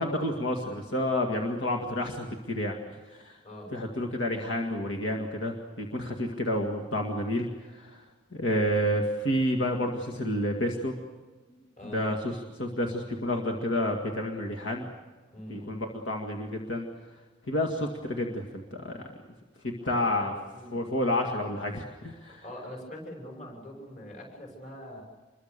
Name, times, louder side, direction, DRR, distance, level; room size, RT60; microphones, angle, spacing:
voice 1, 0.0-3.4 3.7-8.0 8.3-11.0 11.8-14.9 15.5-16.9 17.5-19.1 19.6-20.3 20.7-22.4, left 1 dB, 70° left, 1 dB, 2.1 m, -30 dB
voice 2, 15.3-15.8 19.8-19.9 20.2-20.8 22.4-25.0, left 1 dB, 40° left, 1 dB, 6.3 m, -43 dB
27.0 x 22.5 x 6.8 m, 1.3 s
head